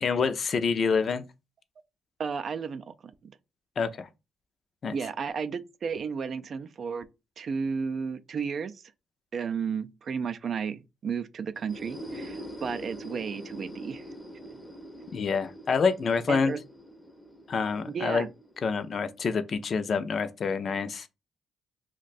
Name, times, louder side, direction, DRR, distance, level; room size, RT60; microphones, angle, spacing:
voice 1, 0.0-1.2 3.8-4.1 4.8-4.9 15.1-16.5 17.5-18.3 18.6-21.1, left 5 dB, 50° left, 0.4 m, -27 dB
voice 2, 2.2-2.9 3.2-3.3 4.9-7.1 7.4-8.8 9.3-14.0 16.3-16.6 17.9-18.3, right 6 dB, 50° right, 0.3 m, -33 dB
sound 1, 11.5-19.2, equal, 10° left, 0.6 m, -44 dB
2.5 x 2.2 x 3.9 m
cardioid pair, 90°, 0 cm